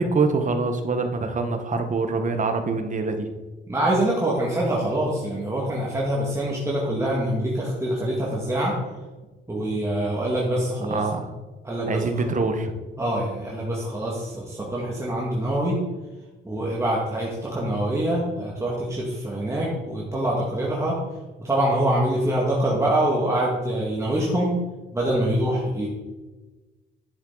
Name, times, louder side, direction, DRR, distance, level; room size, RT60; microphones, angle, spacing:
voice 1, 0.0-3.3 10.9-11.3 11.9-12.7, right 3 dB, 40° right, 7 dB, 1.3 m, -24 dB
voice 2, 3.7-8.7 9.5-11.0 11.6-12.0 13.0-15.8 16.4-20.9 21.4-24.5 24.9-25.9, right 1 dB, 15° right, -5 dB, 2.1 m, -25 dB
11.0 x 7.3 x 4.0 m, 1.2 s
cardioid pair, 90°, 20 cm